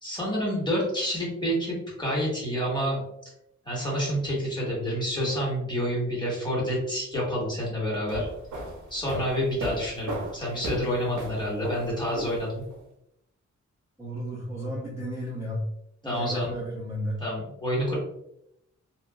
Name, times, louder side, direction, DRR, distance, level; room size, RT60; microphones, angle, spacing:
voice 1, 0.0-3.0 3.6-8.3 8.9-12.6 16.0-16.5 17.2-18.0, equal, 15° left, -5 dB, 1.3 m, -28 dB
sound 1, 7.9-12.8, right 1 dB, 75° right, 0.7 m, -36 dB
voice 2, 14.0-15.7 16.0-17.2, equal, 10° right, -7 dB, 0.6 m, -33 dB
2.9 x 2.4 x 2.2 m, 0.81 s
cardioid pair, 85°, 30 cm